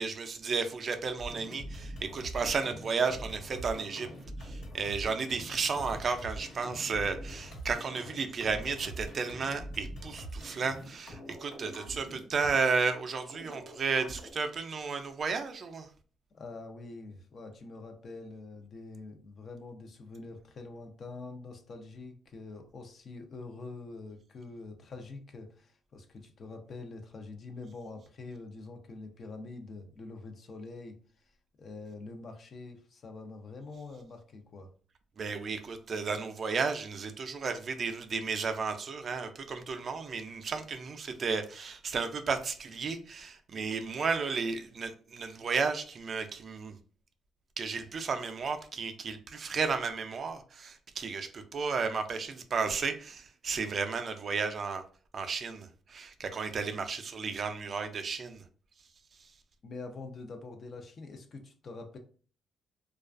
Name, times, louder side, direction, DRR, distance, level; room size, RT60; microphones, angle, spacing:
voice 1, 0.0-4.1 4.4-15.9 35.2-46.8 47.6-54.8 55.1-58.4, right 5 dB, 50° right, 7 dB, 0.3 m, -33 dB
sound 1, 1.2-12.9 13.3-14.3, equal, 80° left, 1.2 m, -44 dB
voice 2, 16.3-31.0 31.6-34.7 59.6-62.0, left 3 dB, 50° left, 5 dB, 0.5 m, -45 dB
2.3 x 2.3 x 2.3 m, 0.42 s
cardioid pair, 90°, 0 cm